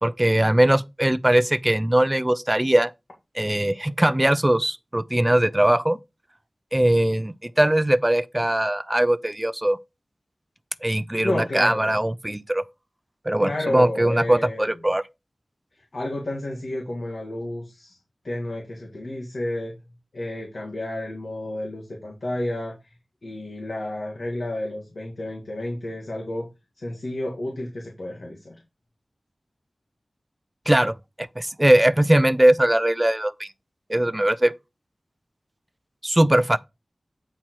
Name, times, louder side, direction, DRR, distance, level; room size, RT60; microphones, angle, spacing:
voice 1, 0.0-2.9 3.4-6.0 6.7-9.8 10.8-12.6 13.3-15.0 30.7-33.5 33.9-34.5 36.0-36.6, right 1 dB, 20° right, 0.5 m, -20 dB
voice 2, 11.2-12.0 13.4-14.8 15.8-18.0 18.2-19.7 20.1-22.9 23.2-26.5 26.8-28.6, left 1 dB, 70° left, 2.0 m, -31 dB
8.8 x 4.3 x 4.6 m
wide cardioid pair, 75°, 0 cm